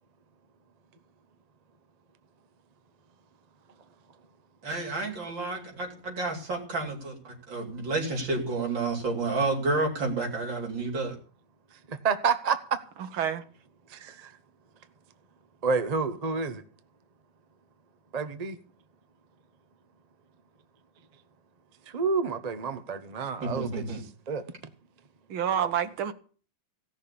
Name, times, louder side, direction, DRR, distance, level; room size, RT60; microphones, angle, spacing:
voice 1, 4.6-11.2 23.4-24.0, right 3 dB, 65° right, 4.2 m, -30 dB
voice 2, 11.9-12.6 13.9-14.3 15.6-16.6 18.1-18.6 21.9-23.8 24.3-24.4, right 5 dB, 40° right, 0.5 m, -29 dB
voice 3, 13.1-13.4 25.3-26.1, right 9 dB, 90° right, 1.9 m, -28 dB
16.5 x 6.5 x 8.5 m
omnidirectional pair, 2.2 m